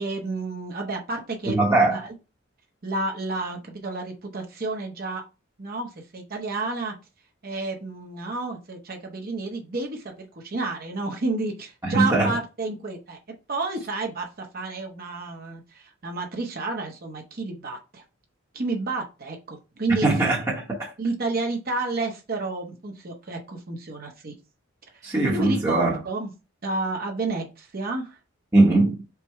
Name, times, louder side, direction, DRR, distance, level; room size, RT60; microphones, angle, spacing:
voice 1, 0.0-2.0 2.8-5.2 5.6-6.9 7.4-13.2 13.5-18.0 18.5-20.3 21.0-24.3 24.9-26.3 26.6-28.2, right 3 dB, 45° right, 0.8 m, -30 dB
voice 2, 1.5-2.0 11.8-12.3 20.0-20.9 25.0-26.0 28.5-29.0, right 2 dB, 15° right, 1.0 m, -21 dB
4.6 x 2.1 x 4.5 m
head